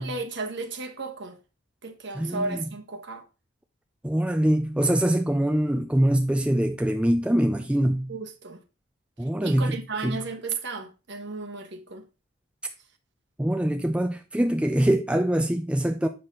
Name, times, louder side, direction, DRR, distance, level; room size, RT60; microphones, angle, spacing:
voice 1, 0.0-1.4 1.8-3.2 8.1-8.6 9.4-12.0, right 3 dB, 55° right, 1.2 m, -34 dB
voice 2, 2.2-2.6 4.0-8.1 9.2-9.8 10.0-10.2 13.4-16.1, right 1 dB, 5° right, 0.4 m, -23 dB
7.9 x 5.9 x 3.8 m
head